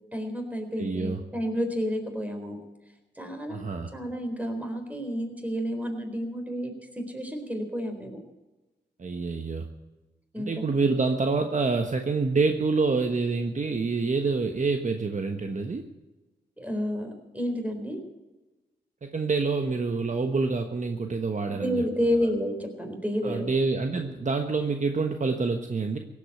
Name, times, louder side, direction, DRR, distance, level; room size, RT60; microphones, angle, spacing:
voice 1, 0.1-2.6 3.2-3.7 3.9-8.2 10.3-10.7 16.6-18.0 21.5-23.5, equal, 10° right, 5 dB, 4.0 m, -30 dB
voice 2, 0.8-1.2 3.5-3.9 9.0-9.7 10.4-15.8 19.0-21.8 23.2-26.0, right 4 dB, 40° right, 5 dB, 1.3 m, -27 dB
17.0 x 8.6 x 9.1 m, 1.1 s
cardioid pair, 55°, 19 cm